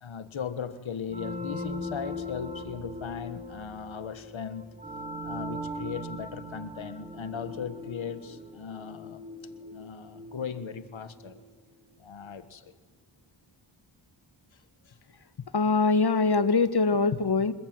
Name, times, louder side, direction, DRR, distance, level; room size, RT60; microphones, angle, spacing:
voice 1, 0.0-4.6 5.2-9.2 9.6-11.4 12.0-12.7 14.8-15.0, left 7 dB, 80° left, 11 dB, 1.5 m, -38 dB
sound 1, 1.1-11.5, left 1 dB, 15° right, 3.6 m, -40 dB
voice 2, 15.5-17.5, left 4 dB, 55° left, 12 dB, 1.5 m, -23 dB
26.0 x 21.5 x 9.6 m, 1.4 s
wide cardioid pair, 85°, 46 cm